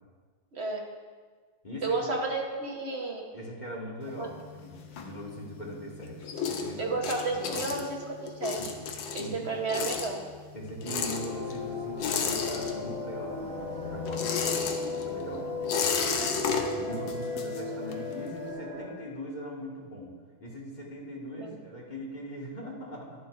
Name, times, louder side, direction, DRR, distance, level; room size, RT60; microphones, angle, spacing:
voice 1, 0.5-0.9 1.8-3.3 4.2-4.3 6.8-8.6 9.1-10.2 21.4-21.5, right 3 dB, 40° right, 0 dB, 1.0 m, -32 dB
voice 2, 1.6-2.1 3.3-6.9 7.3-7.7 8.6-8.7 9.2-9.5 10.5-14.3 15.1-15.5 16.6-23.3, equal, 20° left, -4 dB, 1.8 m, -41 dB
sound 1, 4.0-5.6 6.0-13.2 13.4-18.1, left 6 dB, 65° left, 1.5 m, -33 dB
sound 2, 10.9-18.9, left 3 dB, 60° right, 4.0 m, -35 dB
12.0 x 11.0 x 2.6 m, 1.5 s
omnidirectional pair, 2.4 m